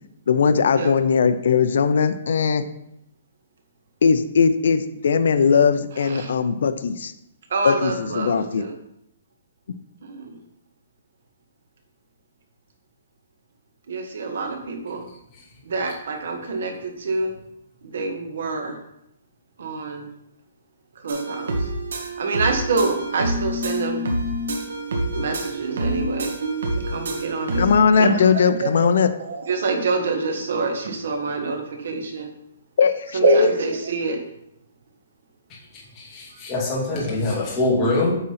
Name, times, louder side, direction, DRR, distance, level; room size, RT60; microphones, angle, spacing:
voice 1, 0.3-2.6 4.0-7.1 7.6-8.6 27.6-29.1 32.8-33.5, left 6 dB, 60° left, 9 dB, 0.6 m, -19 dB
voice 2, 6.0-6.3 7.5-8.7 10.0-10.4 13.9-15.0 15.7-17.3 17.8-18.8 19.6-20.1 21.0-21.7 22.0-24.0 25.1-26.3 26.9-27.7 28.0-28.9 29.2-32.3 33.1-34.2 36.9-37.0, right 4 dB, 60° right, 4 dB, 1.6 m, -26 dB
sound 1, 21.1-27.8, right 1 dB, 80° right, 1.5 m, -27 dB
voice 3, 35.7-38.1, left 2 dB, 15° left, -5 dB, 2.3 m, -24 dB
8.2 x 3.9 x 5.7 m, 0.79 s
hypercardioid pair, 175°, 0 cm